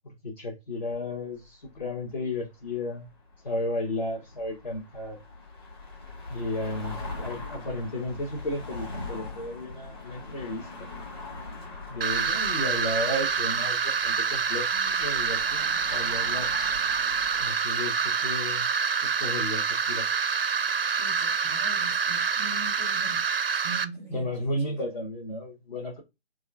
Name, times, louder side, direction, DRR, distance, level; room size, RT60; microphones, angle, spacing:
voice 1, 0.2-3.1 3.4-5.2 6.3-10.9 11.9-16.5 17.4-18.7 19.0-20.0 24.1-26.0, left 1 dB, 45° left, 1.1 m, -33 dB
sound 1, 0.9-17.5, left 3 dB, 25° left, 1.1 m, -42 dB
sound 2, 12.0-23.8, right 6 dB, 65° right, 0.5 m, -27 dB
voice 2, 21.0-24.5, right 3 dB, 5° right, 0.8 m, -42 dB
4.1 x 2.4 x 3.2 m
figure-of-eight pair, 155°, 32 cm